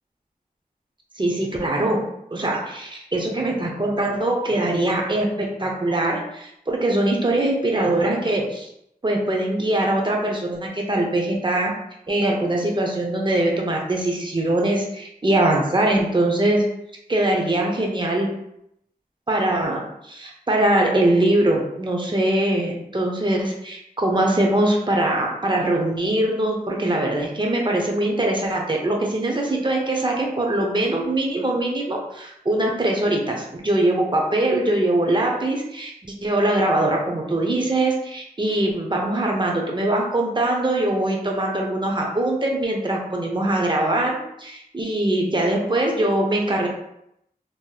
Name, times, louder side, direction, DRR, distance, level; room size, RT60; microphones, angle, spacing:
voice 1, 1.2-8.7 9.0-11.7 12.1-16.7 17.1-18.3 19.3-35.9 36.2-46.7, right 1 dB, 30° right, -1 dB, 0.7 m, -22 dB
3.2 x 3.0 x 2.2 m, 0.78 s
wide cardioid pair, 55°, 16 cm